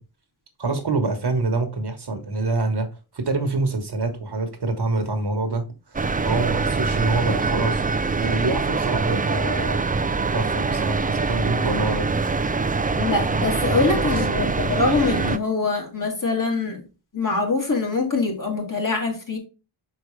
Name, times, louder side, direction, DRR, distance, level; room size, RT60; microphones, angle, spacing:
voice 1, 0.6-2.9 3.1-7.8 8.2-9.8 10.2-12.1 14.0-14.4, right 3 dB, 50° right, 1.3 m, -26 dB
sound 1, 5.9-15.4, right 4 dB, 20° right, 0.3 m, -24 dB
voice 2, 12.9-16.8 17.1-19.4, left 3 dB, 40° left, 2.4 m, -24 dB
6.3 x 4.9 x 3.2 m
wide cardioid pair, 120°, 50 cm